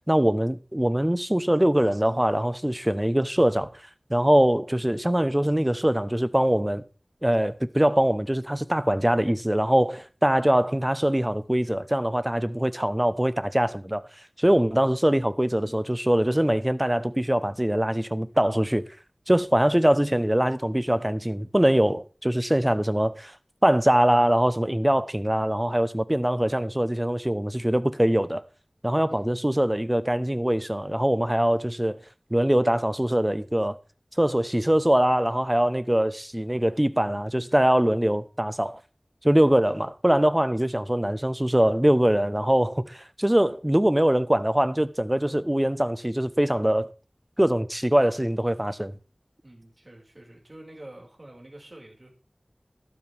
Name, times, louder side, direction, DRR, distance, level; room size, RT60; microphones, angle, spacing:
voice 1, 0.1-3.7 4.1-6.8 7.2-14.0 14.4-18.9 19.3-23.4 23.6-28.4 28.8-32.0 32.3-33.8 34.2-38.8 39.2-46.9 47.4-48.9, right 1 dB, 15° right, 1.0 m, -23 dB
voice 2, 29.1-29.4 49.4-52.1, right 1 dB, 45° right, 5.5 m, -47 dB
12.5 x 12.0 x 3.6 m
wide cardioid pair, 45°, 0 cm